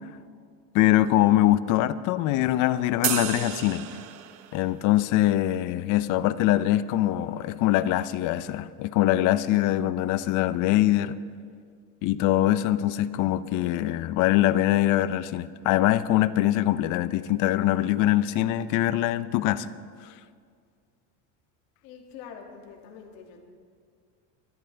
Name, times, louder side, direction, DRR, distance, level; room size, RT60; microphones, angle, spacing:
voice 1, 0.7-3.9 4.5-11.2 12.0-19.7, left 14 dB, 55° left, 14 dB, 0.6 m, -23 dB
sound 1, 3.0-4.6, right 14 dB, 85° right, 0.9 m, -31 dB
voice 2, 21.8-23.4, left 6 dB, 80° left, 1 dB, 2.5 m, -45 dB
22.5 x 12.5 x 3.4 m, 2.1 s
cardioid pair, 145°, 36 cm